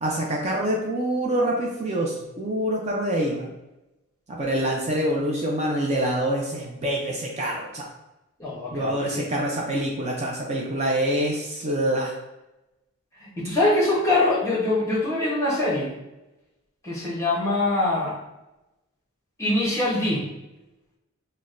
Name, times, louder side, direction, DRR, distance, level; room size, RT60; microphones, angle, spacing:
voice 1, 0.0-3.5 4.3-7.9 8.7-12.1, right 1 dB, 30° right, -2 dB, 0.4 m, -26 dB
voice 2, 8.4-9.2 13.2-15.9 16.8-18.2 19.4-20.3, left 2 dB, 15° left, -5 dB, 0.9 m, -23 dB
5.9 x 2.1 x 2.5 m, 0.95 s
head